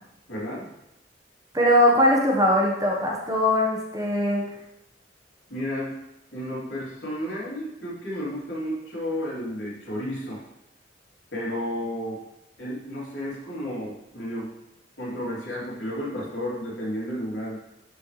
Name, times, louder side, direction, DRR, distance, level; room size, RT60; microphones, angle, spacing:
voice 1, 0.3-0.7 5.5-5.9 6.3-10.4 11.3-12.2 12.6-14.5 15.0-17.6, equal, 75° left, -6 dB, 3.1 m, -32 dB
voice 2, 1.5-4.4, left 1 dB, 20° right, -1 dB, 1.2 m, -21 dB
13.0 x 4.4 x 3.3 m, 0.85 s
head